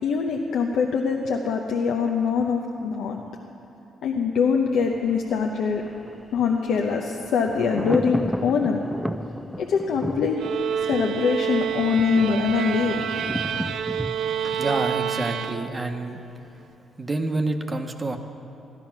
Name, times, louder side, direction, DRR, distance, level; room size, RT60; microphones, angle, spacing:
voice 1, 0.0-3.2 4.0-5.8 6.3-8.8 9.6-10.4 10.8-12.9 13.5-13.8, left 6 dB, 75° left, 1 dB, 0.8 m, -23 dB
Thunder, 4.8-15.7 16.0-16.1, equal, ahead, 0.3 m, -34 dB
sound 1, 10.4-16.0, right 8 dB, 70° right, 0.4 m, -28 dB
voice 2, 14.4-16.2 17.0-18.2, right 2 dB, 25° right, 5 dB, 0.9 m, -28 dB
14.5 x 10.5 x 5.9 m, 2.8 s
cardioid pair, 90°, 0 cm